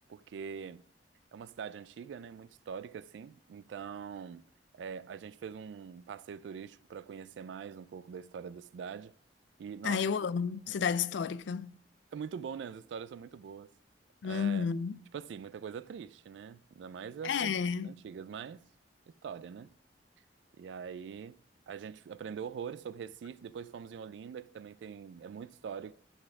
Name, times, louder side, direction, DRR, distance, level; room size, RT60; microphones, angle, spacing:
voice 1, 0.1-0.8 1.3-4.4 4.7-9.1 9.6-10.0 10.7-10.8 12.1-13.7 14.2-14.7 15.1-17.5 17.8-18.7 19.2-19.7 20.6-21.4 21.7-25.9, right 7 dB, 80° right, 0.3 m, -43 dB
voice 2, 9.8-11.7 14.2-15.0 17.2-17.9, left 6 dB, 85° left, 0.4 m, -31 dB
12.0 x 4.2 x 5.9 m
head